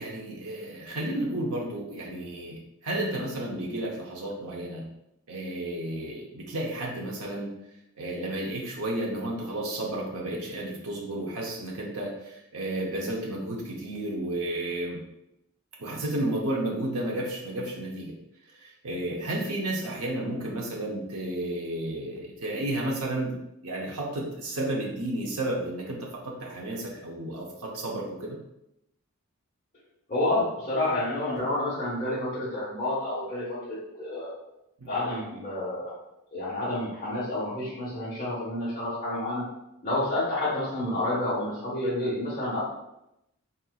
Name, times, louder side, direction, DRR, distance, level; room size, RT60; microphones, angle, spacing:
voice 1, 0.0-4.8 5.3-7.5 8.0-15.0 15.8-18.1 18.5-23.3 23.6-28.4 34.8-34.9, right 1 dB, 80° right, -2 dB, 0.8 m, -32 dB
voice 2, 30.1-34.3 34.8-35.9 36.3-39.4 39.8-42.6, left 1 dB, 35° left, -11 dB, 1.2 m, -29 dB
4.3 x 3.8 x 2.3 m, 0.84 s
head